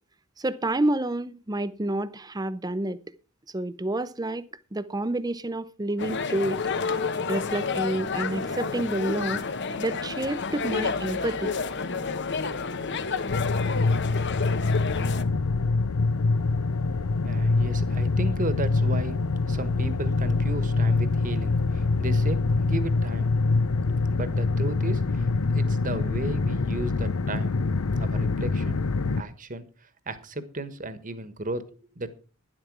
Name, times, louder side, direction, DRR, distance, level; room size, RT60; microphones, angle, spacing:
voice 1, 0.4-3.0 3.5-4.4 4.7-6.6 7.3-9.4 9.8-11.6, right 1 dB, 20° right, 0.6 m, -29 dB
sound 1, 6.0-15.2, left 4 dB, 55° left, 0.9 m, -30 dB
sound 2, 13.3-29.2, left 3 dB, 85° left, 0.7 m, -25 dB
voice 2, 17.2-19.2 19.5-23.3 24.1-25.3 25.5-27.5 28.0-28.8 29.1-32.2, right 2 dB, 35° right, 1.3 m, -35 dB
12.0 x 11.0 x 4.7 m
head